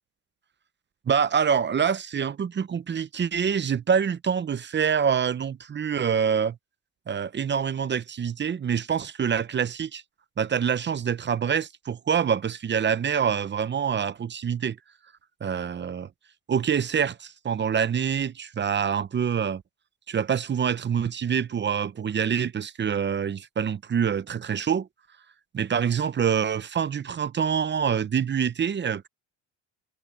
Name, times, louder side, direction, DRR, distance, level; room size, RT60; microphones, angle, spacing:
voice 1, 1.1-6.6 7.1-10.0 10.4-14.8 15.4-16.1 16.5-19.6 20.1-24.9 25.5-29.1, right 7 dB, 30° right, 0.8 m, -26 dB
cardioid pair, 100°, 39 cm